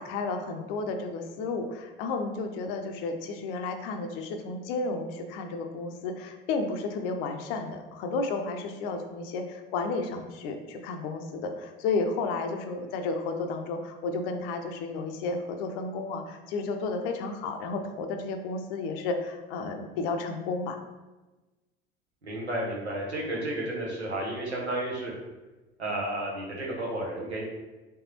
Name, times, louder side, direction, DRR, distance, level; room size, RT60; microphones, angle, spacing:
voice 1, 0.0-20.8, left 3 dB, 60° left, 5 dB, 0.6 m, -32 dB
voice 2, 22.2-25.1 25.8-27.4, right 1 dB, 90° right, -3 dB, 0.8 m, -32 dB
3.4 x 3.3 x 2.9 m, 1.1 s
figure-of-eight pair, 65°, 32 cm